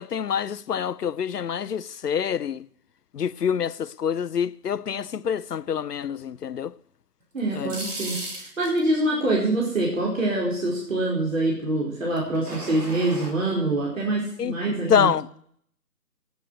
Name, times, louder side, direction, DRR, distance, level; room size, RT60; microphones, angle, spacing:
voice 1, 0.0-2.7 3.1-6.7 7.5-7.8 14.4-14.5 14.9-15.3, left 8 dB, 80° left, 0.6 m, -26 dB
voice 2, 7.3-15.1, right 2 dB, 55° right, 4.7 m, -25 dB
sound 1, 7.4-8.9 12.2-13.3, right 1 dB, 70° right, 3.8 m, -35 dB
9.3 x 8.7 x 9.4 m
figure-of-eight pair, 165°, 47 cm